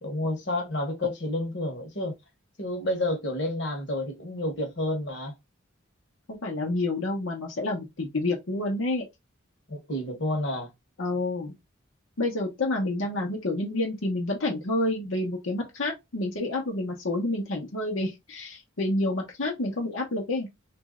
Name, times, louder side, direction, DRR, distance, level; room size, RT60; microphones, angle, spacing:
voice 1, 0.0-2.2 2.6-5.4 9.7-10.7, left 1 dB, 60° left, 1.1 m, -30 dB
voice 2, 6.3-9.1 11.0-11.5 12.2-20.5, left 2 dB, 85° left, 1.0 m, -29 dB
3.1 x 2.6 x 3.6 m
head